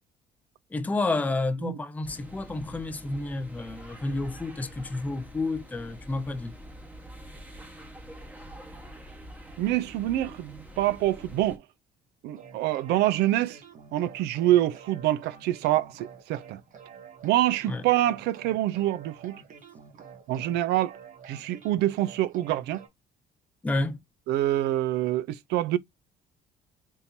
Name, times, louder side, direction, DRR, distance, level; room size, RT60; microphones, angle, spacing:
voice 1, 0.7-6.5 17.7-17.8 23.6-24.0, left 2 dB, 10° left, 0.4 m, -30 dB
sound 1, 2.0-11.6, right 1 dB, 10° right, 0.8 m, -46 dB
voice 2, 9.6-11.6 12.2-13.6 13.9-16.6 17.2-19.4 20.3-20.9 21.3-22.8 24.3-25.8, right 14 dB, 80° right, 0.4 m, -26 dB
sound 2, 12.4-22.9, right 6 dB, 50° right, 1.0 m, -49 dB
3.6 x 2.6 x 2.8 m
cardioid pair, 110°, 17 cm